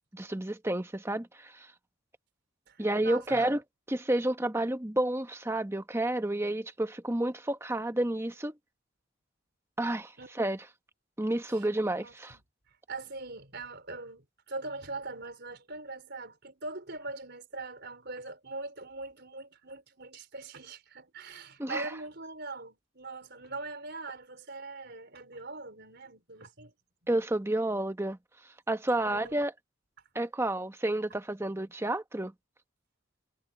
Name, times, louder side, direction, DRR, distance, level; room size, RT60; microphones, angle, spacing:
voice 1, 0.1-1.7 2.8-3.6 3.9-8.5 9.8-10.1 10.4-10.6 11.2-12.4 21.6-21.9 27.1-28.2 28.7-29.5 30.1-32.3, right 1 dB, 10° right, 0.9 m, -30 dB
voice 2, 2.7-3.6 10.2-10.3 11.5-11.7 12.0-12.4 12.9-26.7 28.9-29.4, right 3 dB, 50° right, 4.5 m, -42 dB
head